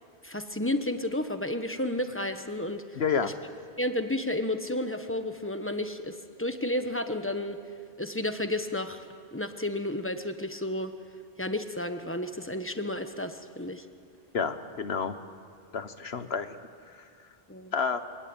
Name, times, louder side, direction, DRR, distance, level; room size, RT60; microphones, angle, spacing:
voice 1, 0.2-3.3 3.8-7.6 8.0-9.0 9.3-10.9 11.4-13.8 17.5-17.7, left 1 dB, 10° left, 8 dB, 1.2 m, -32 dB
voice 2, 3.0-3.3 14.3-15.1 15.7-16.5 17.7-18.0, left 6 dB, 70° left, 10 dB, 1.5 m, -29 dB
28.0 x 18.0 x 9.0 m, 2.2 s
omnidirectional pair, 1.1 m